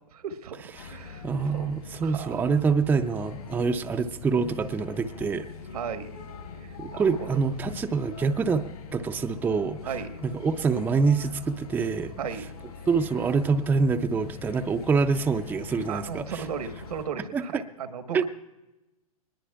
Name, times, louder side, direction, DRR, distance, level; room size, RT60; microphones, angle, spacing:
voice 1, 0.1-1.7 2.0-2.4 5.7-6.1 6.6-7.4 9.8-10.1 12.2-12.5 15.8-18.3, right 7 dB, 80° right, 9 dB, 1.2 m, -36 dB
sound 1, 0.7-17.0, left 5 dB, 90° left, 6.8 m, -43 dB
voice 2, 1.2-5.5 6.8-8.7 8.9-9.8 10.2-12.1 12.9-16.4 17.3-17.4 18.1-18.3, right 4 dB, 10° right, 7 dB, 0.4 m, -25 dB
22.0 x 20.5 x 2.3 m, 1.0 s
hypercardioid pair, 125°, 19 cm